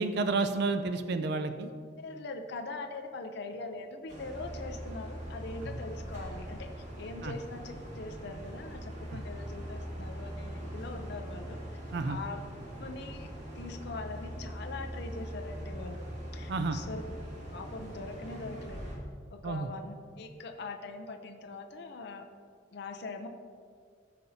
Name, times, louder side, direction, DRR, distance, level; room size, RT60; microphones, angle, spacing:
voice 1, 0.0-1.7 7.2-7.4 11.9-12.2 16.5-16.8 19.4-19.7, right 3 dB, 60° right, 9 dB, 0.4 m, -30 dB
voice 2, 2.0-11.6 12.0-12.4 12.8-13.3 13.5-17.0 17.5-18.9 19.3-22.3 22.7-23.3, left 3 dB, 60° left, 6 dB, 0.5 m, -42 dB
sound 1, 4.1-19.0, equal, 40° right, 1.7 m, -42 dB
13.5 x 5.3 x 2.7 m, 2.1 s
head